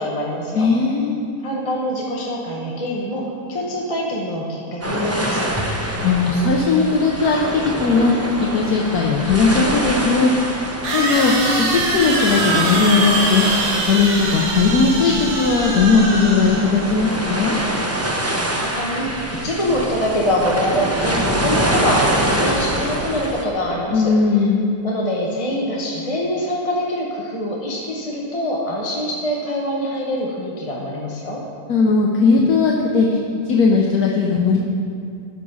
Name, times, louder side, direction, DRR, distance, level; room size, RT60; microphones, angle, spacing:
voice 1, 0.0-0.7 1.4-5.5 18.6-24.4 24.8-31.4, equal, 25° left, -3 dB, 1.0 m, -24 dB
voice 2, 0.5-1.2 5.9-8.1 8.5-10.3 10.9-11.3 11.7-13.4 13.9-17.6 23.9-24.7 31.7-33.2 33.5-34.6, left 4 dB, 70° left, -1 dB, 1.3 m, -17 dB
sound 1, 4.8-23.4, right 1 dB, 20° right, 0.4 m, -25 dB
sound 2, 9.2-9.3 10.8-17.0, right 2 dB, 70° right, 1.8 m, -23 dB
13.5 x 6.1 x 5.4 m, 2.4 s
omnidirectional pair, 1.7 m